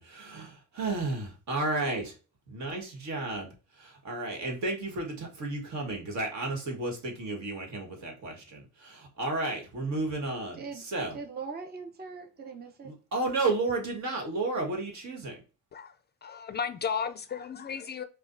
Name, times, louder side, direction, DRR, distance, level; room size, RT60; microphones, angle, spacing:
voice 1, 0.0-2.1 2.5-11.2 12.8-15.4, right 2 dB, 65° right, 1.5 m, -33 dB
voice 2, 10.5-10.9 11.1-13.0, right 5 dB, 30° right, 0.7 m, -41 dB
voice 3, 16.2-18.0, left 6 dB, 35° left, 0.4 m, -34 dB
4.8 x 2.3 x 2.5 m
cardioid pair, 90°, 30 cm